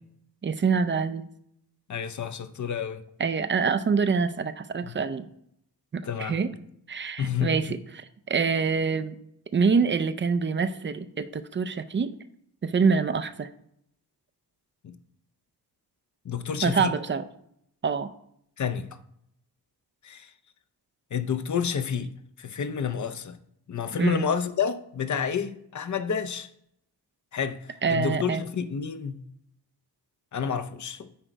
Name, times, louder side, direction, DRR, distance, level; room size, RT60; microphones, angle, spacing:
voice 1, 0.4-1.3 3.2-5.3 5.9-6.5 6.9-9.2 9.5-12.1 12.6-13.5 16.6-17.2 17.8-18.1 24.0-24.2 27.8-28.4, right 5 dB, 30° right, 0.4 m, -25 dB
voice 2, 1.9-3.0 4.8-4.9 6.0-6.4 7.2-7.7 14.8-15.0 16.2-16.9 18.6-18.9 20.0-20.3 21.1-22.1 22.4-23.4 23.7-26.5 27.3-29.2 30.3-31.1, left 7 dB, 45° left, 0.6 m, -29 dB
10.0 x 5.1 x 4.5 m
wide cardioid pair, 165°, 42 cm